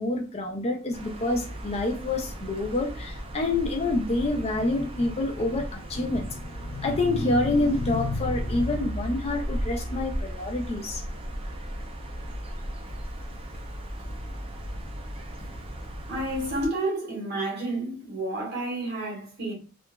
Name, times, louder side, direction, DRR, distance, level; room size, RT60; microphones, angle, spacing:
voice 1, 0.0-11.0, left 2 dB, 30° left, 0.4 m, -27 dB
sound 1, 0.9-16.7, equal, 30° right, 0.5 m, -36 dB
voice 2, 16.1-19.5, right 1 dB, 55° right, 1.4 m, -30 dB
2.8 x 2.4 x 2.2 m
head